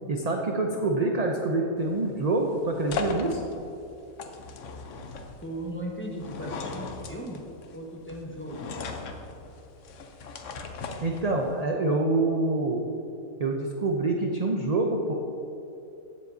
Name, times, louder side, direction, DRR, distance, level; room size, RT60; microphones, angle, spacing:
voice 1, 0.1-3.4 11.0-12.8 13.4-15.1, right 2 dB, 45° right, 1 dB, 0.5 m, -26 dB
sound 1, 1.8-11.6, left 4 dB, 65° left, 1.0 m, -38 dB
voice 2, 5.4-7.4 7.7-8.7, right 1 dB, 10° left, -2 dB, 0.9 m, -37 dB
15.5 x 7.5 x 2.7 m, 2.7 s
omnidirectional pair, 1.5 m